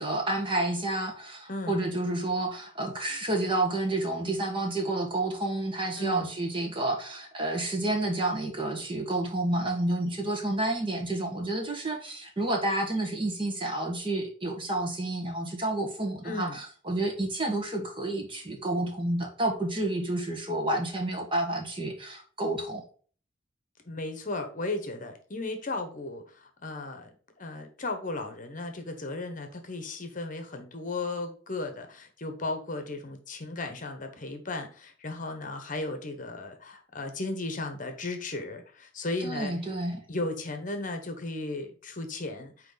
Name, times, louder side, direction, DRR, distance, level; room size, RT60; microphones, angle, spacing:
voice 1, 0.0-22.8 39.2-40.0, right 2 dB, 25° right, 2 dB, 1.5 m, -30 dB
voice 2, 1.5-1.8 6.0-6.3 16.2-16.6 23.9-27.1 27.4-39.5 40.1-42.7, left 2 dB, 45° left, 6 dB, 1.0 m, -35 dB
8.9 x 3.1 x 4.0 m, 0.43 s
head